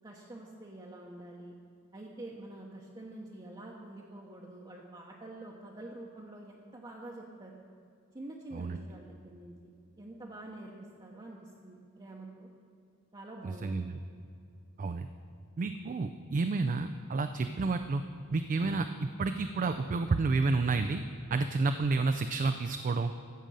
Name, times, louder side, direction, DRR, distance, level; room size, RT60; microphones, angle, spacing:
voice 1, 0.0-1.6 1.9-7.6 8.1-9.7 10.0-10.7 11.0-12.5 13.1-14.0, right 2 dB, 20° right, -3 dB, 0.8 m, -47 dB
voice 2, 13.4-14.0 14.8-15.1 15.6-18.0 18.3-21.0 21.3-23.1, right 3 dB, 35° right, 8 dB, 0.4 m, -30 dB
14.0 x 5.2 x 7.5 m, 2.5 s
head